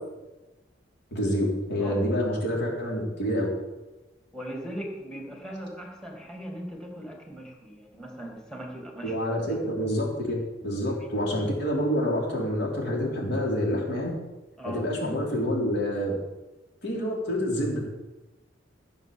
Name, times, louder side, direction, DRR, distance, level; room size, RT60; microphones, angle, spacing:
voice 1, 1.1-3.5 9.0-10.3 10.6-14.1 14.6-16.1 16.8-17.8, equal, 60° left, -2 dB, 4.2 m, -27 dB
voice 2, 4.3-9.2 9.5-9.6 10.9-11.1 14.6-14.9, equal, 5° left, 1 dB, 2.7 m, -39 dB
15.0 x 7.2 x 7.2 m, 1.1 s
head